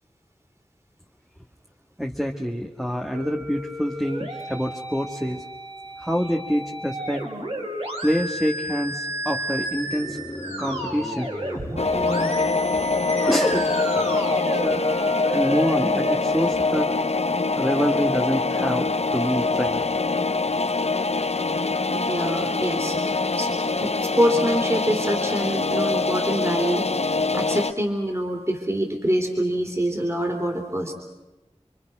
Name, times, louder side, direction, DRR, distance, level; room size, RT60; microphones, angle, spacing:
voice 1, 2.0-5.4 6.0-7.2 8.0-10.2 10.6-11.3 13.2-13.7 14.5-14.8 15.3-16.9 17.6-19.9, equal, 5° right, 1 dB, 1.7 m, -26 dB
sound 1, 3.1-16.2, right 1 dB, 65° right, 4.8 m, -33 dB
sound 2, 9.8-13.4, left 1 dB, 25° left, 1.8 m, -38 dB
sound 3, 11.8-27.7, left 3 dB, 65° left, 0.7 m, -24 dB
voice 2, 11.9-12.5 21.9-23.5 23.8-26.9 27.3-30.9, equal, 25° right, 2 dB, 3.4 m, -25 dB
28.5 x 23.5 x 6.1 m, 1.1 s
wide cardioid pair, 45°, 11 cm